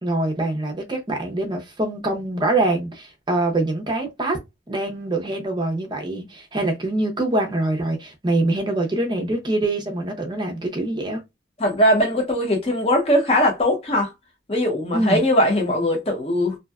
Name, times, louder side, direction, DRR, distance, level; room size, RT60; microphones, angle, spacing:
voice 1, 0.0-4.4 4.7-11.2 14.9-15.2, right 2 dB, 25° right, 0.5 m, -24 dB
voice 2, 11.6-14.1 14.5-16.6, equal, 30° left, 0.8 m, -20 dB
2.6 x 2.2 x 2.3 m
head